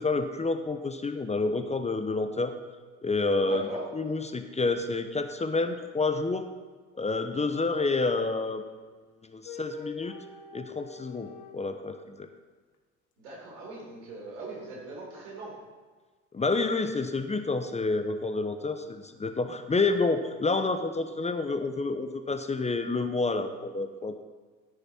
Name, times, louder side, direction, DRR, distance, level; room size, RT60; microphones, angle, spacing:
voice 1, 0.0-2.5 3.0-3.7 3.9-6.5 6.9-8.6 9.2-10.1 10.5-12.3 16.3-24.2, left 3 dB, 20° left, 7 dB, 0.8 m, -29 dB
voice 2, 3.4-3.8 13.2-15.6, right 2 dB, 75° right, -3 dB, 3.8 m, -40 dB
sound 1, 9.4-11.6, left 7 dB, 55° left, 1.2 m, -44 dB
14.0 x 6.7 x 4.4 m, 1.4 s
hypercardioid pair, 60°, 35 cm